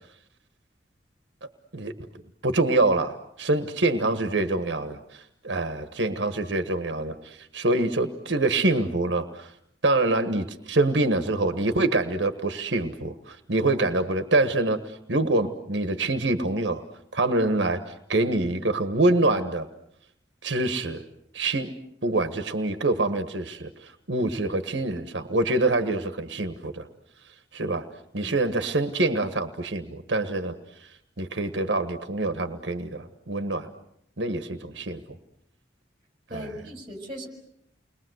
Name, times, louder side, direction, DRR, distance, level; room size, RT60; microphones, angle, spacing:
voice 1, 2.4-9.5 9.8-16.8 17.1-19.7 20.4-21.0 21.3-21.7 22.0-26.9 27.5-27.9 28.1-30.5 30.8-30.9 31.2-33.7 34.2-35.0 36.3-36.5, right 2 dB, 80° right, 8 dB, 1.4 m, -25 dB
voice 2, 36.3-37.3, equal, 30° right, 3 dB, 5.7 m, -38 dB
30.0 x 22.0 x 8.0 m, 0.74 s
head